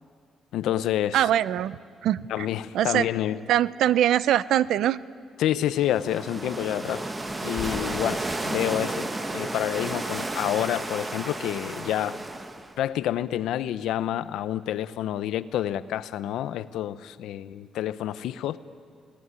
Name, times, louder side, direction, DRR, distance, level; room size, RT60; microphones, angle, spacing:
voice 1, 0.5-1.3 2.3-3.4 5.4-7.1 7.4-12.2 12.8-18.6, left 12 dB, 90° left, 14 dB, 0.8 m, -28 dB
voice 2, 1.1-2.5 2.7-3.1 3.5-5.0, right 11 dB, 75° right, 18 dB, 0.5 m, -23 dB
sound 1, 5.7-12.8, right 2 dB, 15° right, 1.2 m, -32 dB
sound 2, 7.2-9.8 10.1-11.1 12.3-13.8, left 5 dB, 50° left, 2.7 m, -42 dB
28.0 x 18.5 x 9.7 m, 2.3 s
cardioid pair, 125°, 0 cm